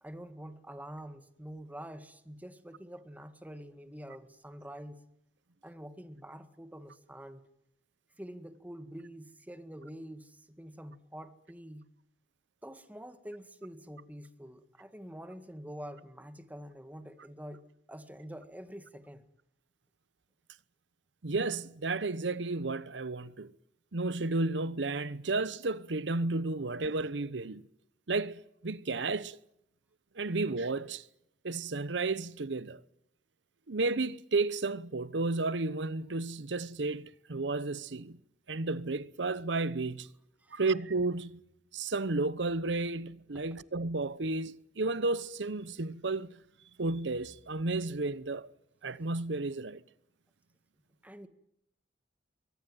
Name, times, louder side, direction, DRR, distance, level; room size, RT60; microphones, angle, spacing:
voice 1, 0.0-5.0 5.6-7.5 8.2-11.9 12.6-19.2 40.4-40.6 43.3-43.4 51.0-51.3, equal, 10° right, 1.8 m, -46 dB
voice 2, 21.2-23.5 23.9-27.7 28.1-29.4 30.1-31.1 31.4-32.8 33.7-38.2 38.5-40.1 40.5-41.4 41.7-46.4 46.8-48.5 48.8-49.8, right 3 dB, 80° right, 0.9 m, -32 dB
23.5 x 18.0 x 9.2 m
head